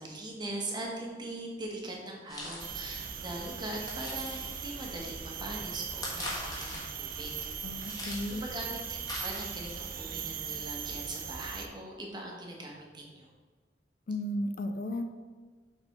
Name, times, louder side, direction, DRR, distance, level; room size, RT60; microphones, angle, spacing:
voice 1, 0.0-7.3 7.9-13.3, right 1 dB, 25° right, -1 dB, 1.2 m, -41 dB
sound 1, 2.3-9.9, left 1 dB, 20° left, 1.4 m, -44 dB
sound 2, 2.6-11.7, right 7 dB, 50° right, 0.6 m, -39 dB
voice 2, 7.6-8.4 14.1-15.1, left 1 dB, 50° left, 7 dB, 0.4 m, -34 dB
6.4 x 4.3 x 4.3 m, 1.4 s
head